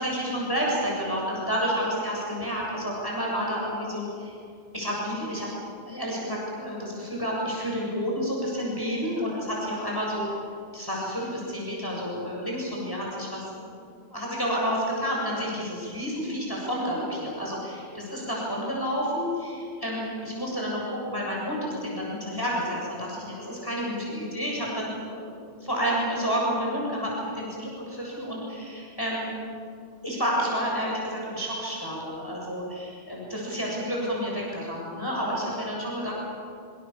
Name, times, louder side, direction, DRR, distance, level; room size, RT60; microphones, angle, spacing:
voice 1, 0.0-4.4 4.7-5.5 5.9-10.2 10.7-13.6 14.1-29.3 30.0-36.1, equal, 20° left, -4 dB, 7.4 m, -30 dB
26.0 x 25.5 x 7.4 m, 2.2 s
omnidirectional pair, 1.1 m